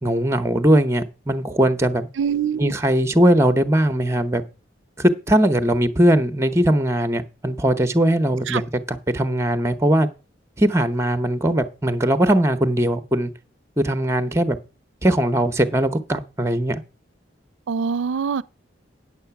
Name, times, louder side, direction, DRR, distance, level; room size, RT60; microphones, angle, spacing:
voice 1, 0.0-2.1 2.6-4.4 5.0-10.1 10.6-13.3 13.8-14.6 15.0-16.8, right 1 dB, 15° right, 0.8 m, -20 dB
voice 2, 2.2-2.7 8.5-8.6 17.7-18.4, right 6 dB, 90° right, 0.4 m, -24 dB
9.0 x 7.7 x 5.8 m
head